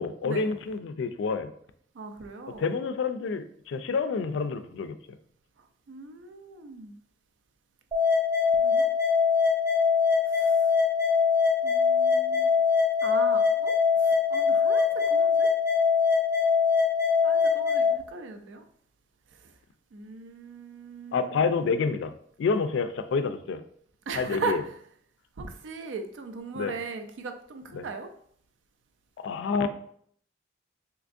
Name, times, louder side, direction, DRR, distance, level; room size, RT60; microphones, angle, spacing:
voice 1, 0.0-1.5 2.6-5.0 21.1-22.1 22.4-23.6 24.1-24.6 26.5-26.8 27.7-27.8 29.2-29.7, left 5 dB, 80° left, 10 dB, 0.3 m, -28 dB
voice 2, 1.9-2.6 5.9-7.0 8.6-8.9 10.3-10.6 11.6-12.5 13.0-15.5 17.2-18.6 19.9-21.4 24.1-24.6 25.4-28.1, right 4 dB, 90° right, 7 dB, 0.4 m, -38 dB
sound 1, 7.9-17.9, left 5 dB, 15° right, 0.6 m, -23 dB
3.4 x 2.9 x 2.5 m, 0.63 s
head